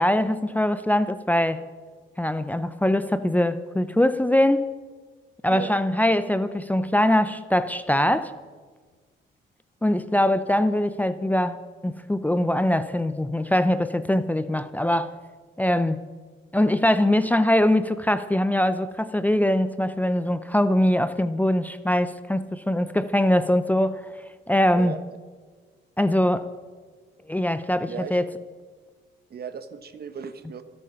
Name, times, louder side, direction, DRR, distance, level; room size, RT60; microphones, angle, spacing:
voice 1, 0.0-1.6 2.2-4.7 5.4-8.3 9.8-15.1 15.6-16.0 16.5-24.1 24.5-24.9 26.0-26.5 27.3-28.3, left 1 dB, 10° left, 12 dB, 0.6 m, -22 dB
voice 2, 27.9-28.2 29.3-30.6, right 6 dB, 50° right, 10 dB, 1.3 m, -36 dB
24.5 x 8.7 x 5.7 m, 1.5 s
cardioid pair, 90°, 20 cm